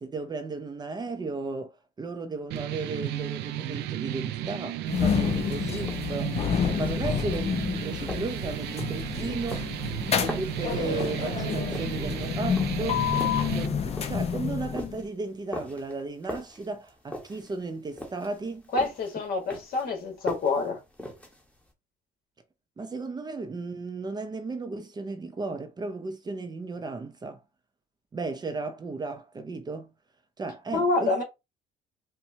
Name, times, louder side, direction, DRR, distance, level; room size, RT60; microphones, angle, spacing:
voice 1, 0.0-6.4 6.8-9.7 10.2-13.1 13.5-18.6 22.8-27.4 28.1-29.9 30.4-31.1, right 3 dB, 25° right, 0.6 m, -35 dB
sound 1, 2.5-13.7, right 12 dB, 80° right, 0.5 m, -34 dB
sound 2, 4.9-15.0, left 7 dB, 40° left, 0.6 m, -29 dB
sound 3, 5.2-21.7, equal, 10° left, 1.1 m, -41 dB
voice 2, 18.7-20.8 30.7-31.2, left 3 dB, 60° left, 1.5 m, -27 dB
4.3 x 2.2 x 2.7 m
cardioid pair, 110°, 17 cm